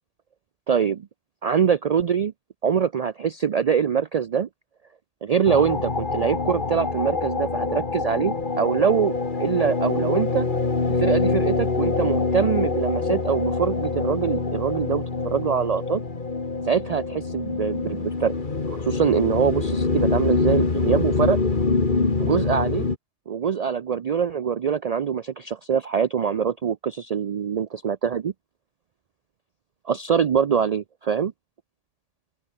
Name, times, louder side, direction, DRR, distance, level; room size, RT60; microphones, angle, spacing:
voice 1, 0.7-1.1 1.4-2.3 2.6-4.5 5.2-10.5 10.9-16.0 16.7-18.3 18.8-21.4 22.2-22.9 23.3-28.3 29.9-31.3, right 7 dB, 75° right, 0.3 m, -24 dB
sound 1, 5.4-22.9, left 4 dB, 40° left, 1.9 m, -25 dB
open air
omnidirectional pair, 1.3 m